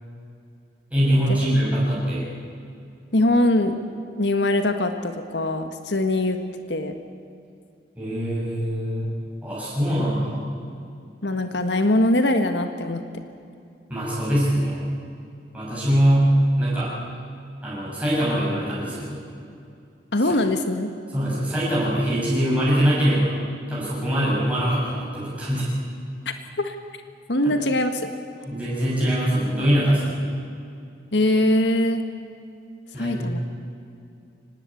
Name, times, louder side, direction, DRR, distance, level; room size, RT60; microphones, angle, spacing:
voice 1, 0.9-2.3 8.0-9.1 9.4-10.4 13.9-14.9 15.5-16.9 17.6-19.2 21.1-23.4 23.7-25.7 27.4-27.5 28.4-30.2 32.9-33.3, equal, 10° right, -8 dB, 6.9 m, -22 dB
voice 2, 3.1-3.8 4.2-6.4 6.7-6.9 11.2-13.0 20.1-20.9 26.2-26.7 27.3-28.1 31.1-32.0 32.9-33.5, left 1 dB, 85° left, 7 dB, 1.6 m, -22 dB
25.0 x 19.0 x 8.6 m, 2.5 s
head